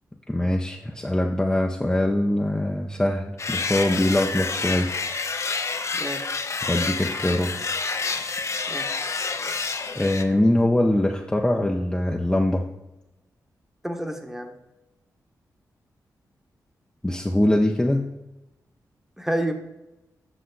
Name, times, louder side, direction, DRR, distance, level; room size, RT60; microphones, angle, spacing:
voice 1, 0.3-4.9 6.6-7.5 9.9-12.7 17.0-18.1, left 1 dB, 10° left, 0 dB, 0.7 m, -23 dB
sound 1, 3.4-10.2, left 4 dB, 45° left, 0.7 m, -28 dB
voice 2, 5.9-6.2 8.7-8.9 13.8-14.5 19.2-19.5, right 1 dB, 5° right, 4 dB, 1.2 m, -29 dB
8.1 x 6.2 x 3.8 m, 0.95 s
cardioid pair, 75°, 7 cm